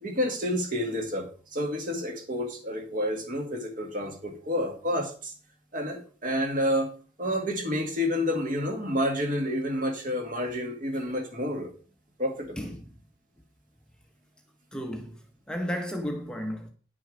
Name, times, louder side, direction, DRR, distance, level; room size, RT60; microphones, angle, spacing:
voice 1, 0.0-5.3 5.7-6.9 7.2-11.7 12.2-12.7, equal, 40° right, 2.0 m, -29 dB
voice 2, 14.7-15.2 15.5-16.7, equal, 5° left, 0.8 m, -33 dB
10.0 x 6.2 x 4.9 m
head